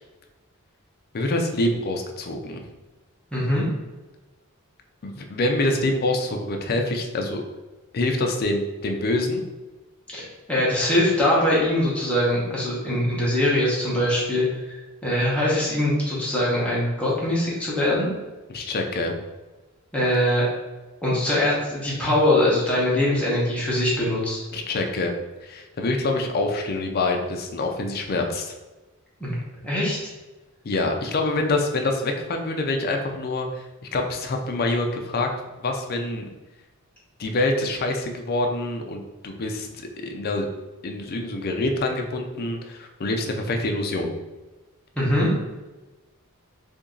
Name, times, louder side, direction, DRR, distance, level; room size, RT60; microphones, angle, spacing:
voice 1, 1.1-2.6 5.0-7.4 7.9-9.4 18.5-19.1 24.5-25.1 25.4-28.6 30.6-33.6 33.9-35.3 35.6-36.2 37.2-39.7 40.0-40.5 40.8-44.1, left 2 dB, 45° left, 3 dB, 0.5 m, -26 dB
voice 2, 3.3-3.7 10.1-18.1 19.9-20.4 21.0-24.5 29.2-29.3 29.6-30.0 44.9-45.3, left 1 dB, 5° left, -7 dB, 1.0 m, -22 dB
2.9 x 2.6 x 3.7 m, 1.1 s
head